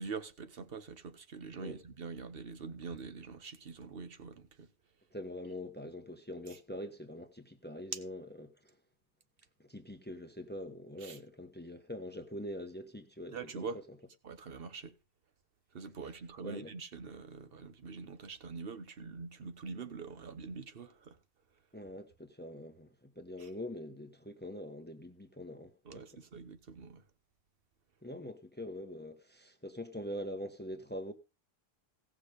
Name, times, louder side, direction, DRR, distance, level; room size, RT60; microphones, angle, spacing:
voice 1, 0.0-4.7 11.0-11.2 13.3-13.8 14.2-14.9 15.7-21.2 23.4-23.5 25.8-27.0, right 4 dB, 65° right, 1.3 m, -44 dB
voice 2, 5.1-8.7 9.6-13.8 16.4-16.7 21.7-26.2 28.0-31.1, left 1 dB, 10° left, 1.2 m, -44 dB
17.0 x 6.2 x 5.2 m
omnidirectional pair, 1.1 m